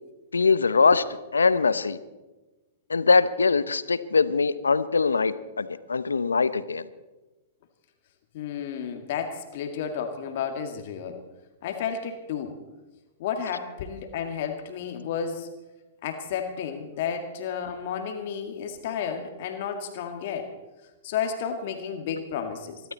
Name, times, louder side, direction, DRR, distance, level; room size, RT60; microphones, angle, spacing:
voice 1, 0.3-1.0 1.3-2.0 2.9-6.8, left 4 dB, 85° left, 15 dB, 0.8 m, -22 dB
voice 2, 8.3-11.2 11.6-12.5 13.2-15.5 16.0-20.5 21.0-22.8, left 7 dB, 55° left, 5 dB, 1.9 m, -32 dB
24.5 x 12.5 x 4.1 m, 1.1 s
hypercardioid pair, 110°, 0 cm